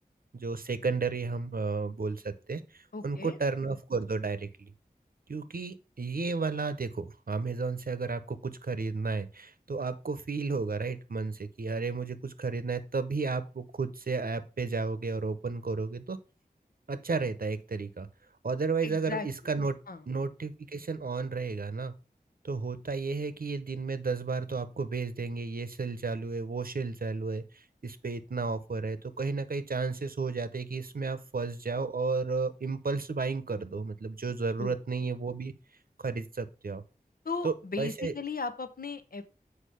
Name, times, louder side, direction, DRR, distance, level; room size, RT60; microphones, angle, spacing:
voice 1, 0.3-4.7 5.3-16.2 16.9-18.1 18.4-19.8 20.1-21.9 22.4-35.5 36.0-36.8 37.4-38.1, right 4 dB, 70° right, 12 dB, 0.8 m, -33 dB
voice 2, 2.9-3.4 18.8-19.3 19.9-20.0 34.6-34.8 37.2-39.2, left 4 dB, 70° left, 9 dB, 0.8 m, -36 dB
6.6 x 4.9 x 5.0 m, 0.32 s
wide cardioid pair, 60°, 16 cm